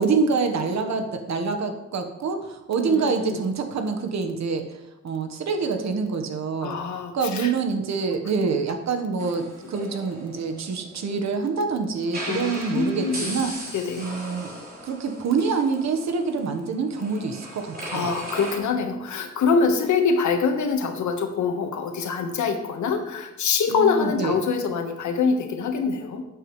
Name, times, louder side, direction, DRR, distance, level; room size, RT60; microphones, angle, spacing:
voice 1, 0.0-4.6 5.0-6.8 7.1-14.5 14.8-18.1 23.7-24.3, right 5 dB, 65° right, 6 dB, 1.4 m, -26 dB
voice 2, 2.9-3.4 6.6-7.5 12.3-13.4 13.7-14.1 17.9-26.3, left 5 dB, 80° left, 5 dB, 1.5 m, -25 dB
sound 1, 9.2-11.3 12.0-18.6, right 1 dB, 30° right, 4.0 m, -37 dB
12.5 x 8.7 x 3.2 m, 0.95 s
wide cardioid pair, 145°, 29 cm